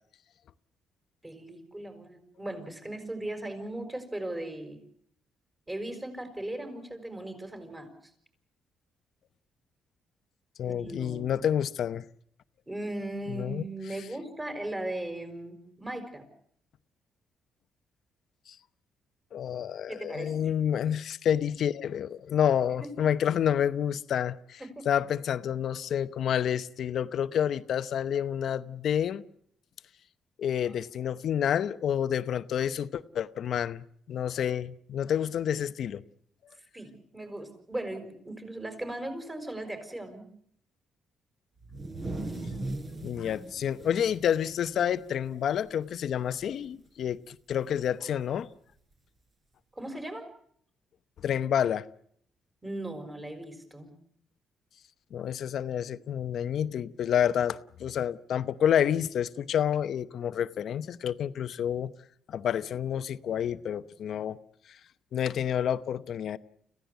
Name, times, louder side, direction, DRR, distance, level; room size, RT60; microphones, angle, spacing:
voice 1, 1.2-4.8 5.7-7.9 10.6-11.3 12.7-16.2 19.9-20.3 22.8-22.9 24.6-24.9 36.7-40.3 48.0-48.2 49.7-50.3 52.6-53.9, right 1 dB, 15° right, 5.7 m, -38 dB
voice 2, 10.6-12.0 13.3-13.6 18.5-18.6 19.3-24.6 24.9-29.2 30.4-36.0 43.0-48.5 51.2-51.8 55.1-61.9 62.3-64.4 65.1-66.4, left 9 dB, 65° left, 0.8 m, -29 dB
sound 1, 41.6-45.3 45.7-45.8 46.2-46.6 47.8-47.9 48.9-49.0, right 2 dB, 40° right, 4.6 m, -39 dB
26.0 x 16.0 x 8.1 m
cardioid pair, 90°, 0 cm